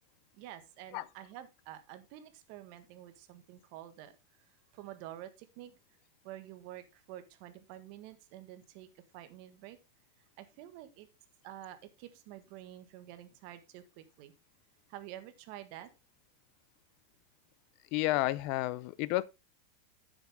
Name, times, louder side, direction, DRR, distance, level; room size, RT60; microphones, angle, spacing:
voice 1, 0.3-4.2 4.7-5.8 6.2-9.8 10.4-11.1 11.4-14.3 14.9-15.9, right 13 dB, 45° right, 1.4 m, -49 dB
voice 2, 17.9-19.2, left 17 dB, 40° left, 0.4 m, -31 dB
9.8 x 7.4 x 3.5 m
supercardioid pair, 165°, 0 cm